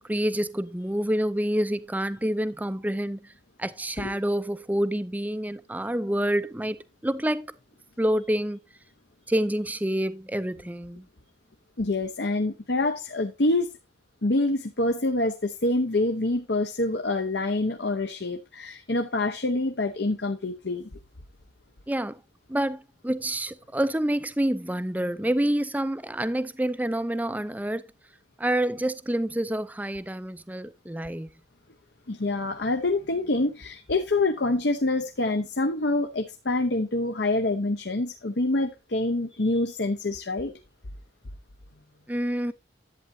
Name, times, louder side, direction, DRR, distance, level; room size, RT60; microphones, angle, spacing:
voice 1, 0.1-3.3 3.6-7.5 8.0-8.6 9.3-11.1 21.9-22.2 22.5-27.9 28.4-31.3 42.1-42.5, right 1 dB, 10° right, 0.5 m, -27 dB
voice 2, 11.8-13.7 14.2-21.0 32.1-40.6, left 2 dB, 65° left, 0.9 m, -26 dB
11.0 x 8.8 x 2.7 m
head